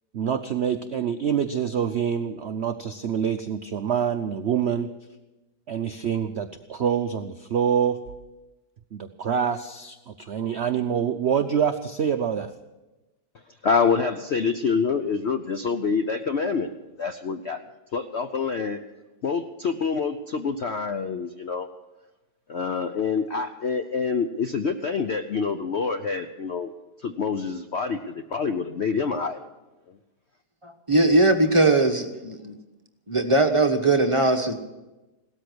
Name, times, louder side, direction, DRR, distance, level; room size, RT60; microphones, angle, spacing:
voice 1, 0.1-4.9 5.7-8.0 8.9-12.5, right 8 dB, 65° right, 8 dB, 0.6 m, -26 dB
voice 2, 13.6-16.7 17.0-17.6 17.9-18.8 19.2-21.7 22.5-26.7 27.0-29.4, left 5 dB, 60° left, 7 dB, 0.7 m, -26 dB
voice 3, 30.6-32.5 33.1-34.5, right 2 dB, 20° right, 4 dB, 0.9 m, -20 dB
17.5 x 13.5 x 6.2 m, 1.1 s
omnidirectional pair, 1.9 m